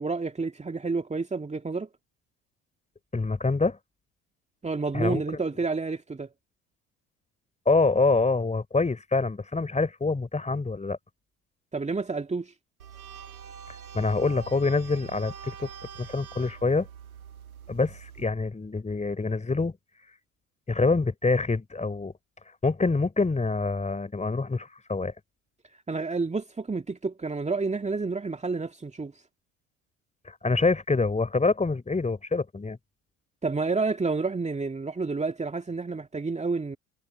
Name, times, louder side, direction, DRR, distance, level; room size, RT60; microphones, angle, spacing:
voice 1, 0.0-1.9 4.6-6.3 11.7-12.5 25.9-29.1 33.4-36.8, right 4 dB, 15° right, 2.2 m, -29 dB
voice 2, 3.1-3.8 4.9-5.4 7.7-11.0 13.9-15.7 16.0-16.9 17.7-19.8 20.7-22.1 22.6-25.1 30.3-32.8, left 3 dB, 15° left, 3.6 m, -26 dB
sound 1, 12.8-18.2, right 7 dB, 80° right, 1.7 m, -44 dB
figure-of-eight pair, 55°, 42 cm